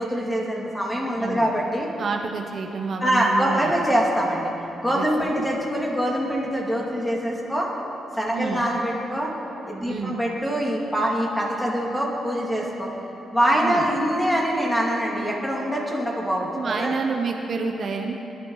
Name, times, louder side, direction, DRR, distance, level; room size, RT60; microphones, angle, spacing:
voice 1, 0.0-1.9 3.0-4.5 4.8-7.7 8.1-9.4 9.7-12.9 13.3-16.9, equal, 5° left, -3 dB, 2.5 m, -24 dB
voice 2, 2.0-3.7 4.9-5.4 8.3-8.6 9.8-10.2 13.6-13.9 16.5-18.1, right 4 dB, 50° right, 2 dB, 1.0 m, -29 dB
20.0 x 11.5 x 4.0 m, 3.0 s
cardioid pair, 110°, 0 cm